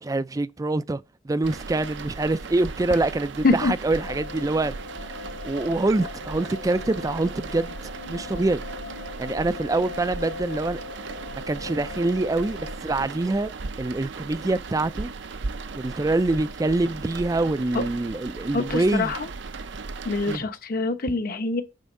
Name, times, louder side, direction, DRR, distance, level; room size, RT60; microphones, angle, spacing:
voice 1, 0.0-4.7 5.4-7.8 8.1-8.6 9.2-10.8 11.5-13.5 13.8-15.1 15.7-19.1 20.3-20.4, right 2 dB, 20° right, 0.3 m, -25 dB
sound 1, 1.4-20.4, right 4 dB, 70° right, 0.6 m, -37 dB
sound 2, 3.9-12.8, left 4 dB, 70° left, 2.5 m, -40 dB
voice 2, 18.5-19.2 20.1-21.6, left 3 dB, 50° left, 0.9 m, -24 dB
9.2 x 3.4 x 5.3 m
head